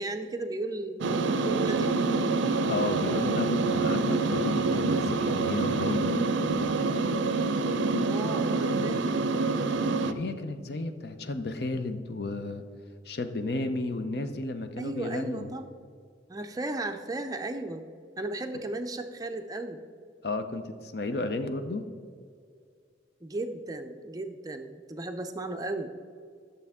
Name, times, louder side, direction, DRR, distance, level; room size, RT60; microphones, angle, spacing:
voice 1, 0.0-1.9 8.1-9.1 14.8-15.6 16.3-17.8 18.2-19.8 23.2-25.9, right 2 dB, 20° right, 6 dB, 0.5 m, -35 dB
sound 1, 1.0-10.1, right 3 dB, 80° right, 0.5 m, -26 dB
voice 2, 2.6-6.1 10.0-12.6 13.1-15.5 20.2-21.8, left 2 dB, 55° left, 8 dB, 0.6 m, -33 dB
11.5 x 6.8 x 3.6 m, 2.2 s
head